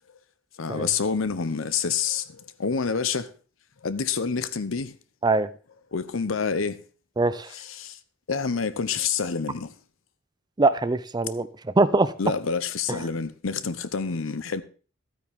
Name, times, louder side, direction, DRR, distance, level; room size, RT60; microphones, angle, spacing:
voice 1, 0.6-3.3 3.8-4.9 5.9-6.8 7.5-8.0 8.3-9.7 12.2-14.6, left 5 dB, 80° left, 0.8 m, -28 dB
voice 2, 7.2-7.5 10.6-11.5 11.8-12.1 12.9-13.0, right 3 dB, 20° right, 0.5 m, -22 dB
12.5 x 9.1 x 3.5 m
head